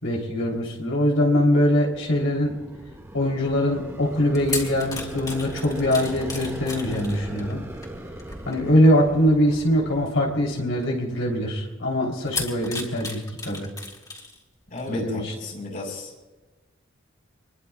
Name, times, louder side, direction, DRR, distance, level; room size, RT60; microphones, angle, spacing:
voice 1, 0.0-2.5 3.1-7.6 8.4-13.7 14.9-15.3, equal, 85° left, -2 dB, 3.4 m, -22 dB
sound 1, 1.6-11.3, right 1 dB, 15° right, 1.9 m, -39 dB
sound 2, 4.1-9.0 9.7-9.9 10.8-10.9 12.2-14.4 14.8-14.9, left 3 dB, 20° left, 3.1 m, -35 dB
voice 2, 14.7-16.1, left 2 dB, 45° left, -1 dB, 4.6 m, -34 dB
27.0 x 22.0 x 2.4 m, 1.2 s
head